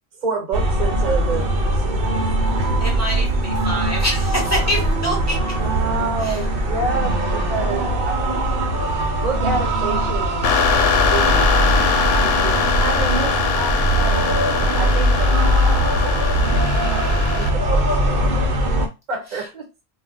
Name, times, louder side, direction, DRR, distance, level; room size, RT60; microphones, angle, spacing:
voice 1, 0.2-2.2 5.6-8.5 9.1-16.3 16.9-17.9 19.1-19.7, right 4 dB, 45° right, 1 dB, 1.0 m, -29 dB
sound 1, 0.5-18.9, right 1 dB, 65° right, 0.8 m, -20 dB
voice 2, 2.5-5.4 6.2-6.4 19.3-19.5, equal, 15° right, -2 dB, 0.9 m, -26 dB
sound 2, 10.4-17.5, left 6 dB, 75° left, 0.8 m, -22 dB
2.3 x 2.0 x 3.6 m, 0.26 s
omnidirectional pair, 1.1 m